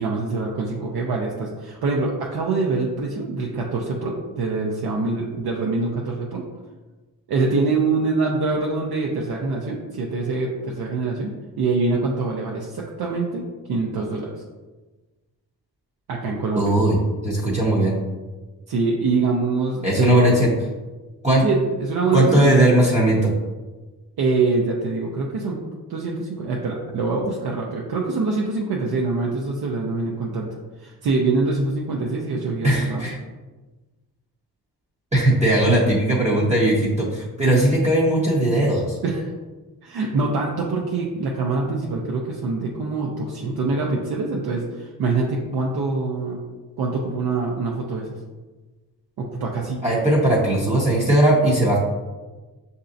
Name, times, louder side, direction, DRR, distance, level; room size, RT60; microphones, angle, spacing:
voice 1, 0.0-6.5 7.3-14.3 16.1-16.7 18.7-20.4 21.4-22.5 24.2-25.6 25.9-30.5 30.8-33.1 39.0-39.3 39.8-46.4 46.8-48.1 49.2-49.8, right 3 dB, 75° right, -2 dB, 0.7 m, -24 dB
voice 2, 16.6-17.0 17.2-18.0 19.8-20.5 21.2-21.5 22.1-23.3 32.6-33.1 35.1-39.0 49.8-51.8, right 1 dB, 20° right, -5 dB, 0.6 m, -18 dB
6.6 x 2.7 x 2.5 m, 1.3 s
wide cardioid pair, 145°, 38 cm